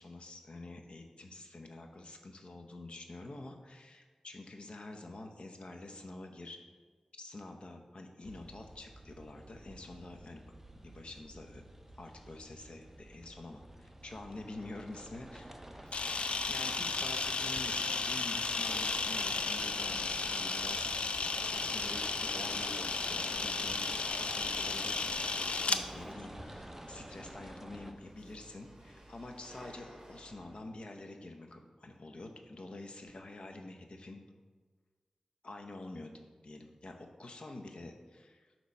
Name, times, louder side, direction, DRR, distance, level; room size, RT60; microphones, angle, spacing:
voice 1, 0.0-6.6 7.2-10.4 10.7-11.6 12.0-16.0 16.5-20.9 21.4-23.8 24.1-25.1 25.6-34.2 35.4-38.5, left 2 dB, 60° left, 4 dB, 0.7 m, -47 dB
sound 1, 8.2-27.9, right 1 dB, 15° right, 0.5 m, -48 dB
Chatter / Hiss / Rattle, 14.0-30.6, right 1 dB, 35° right, 1.2 m, -56 dB
Camera, 15.9-25.8, left 4 dB, 75° left, 0.3 m, -34 dB
8.2 x 3.0 x 5.3 m, 1.5 s
wide cardioid pair, 95°, 2 cm